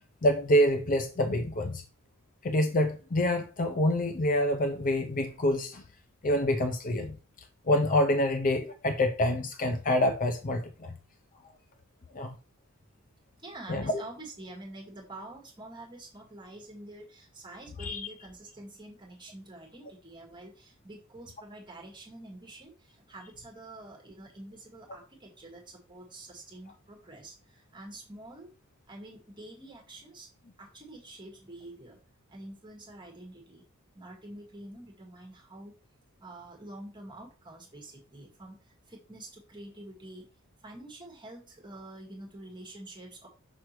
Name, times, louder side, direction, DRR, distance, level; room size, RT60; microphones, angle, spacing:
voice 1, 0.2-1.8 2.4-5.8 6.2-7.2 7.7-10.9 12.1-12.3 13.7-14.0 17.8-18.1, left 1 dB, 40° left, 0.6 m, -26 dB
voice 2, 13.4-28.5 28.9-30.3 30.6-32.0 32.3-33.6 33.9-35.8 36.2-40.3 40.6-43.3, right 1 dB, 20° right, 1.7 m, -47 dB
6.2 x 5.8 x 3.1 m
head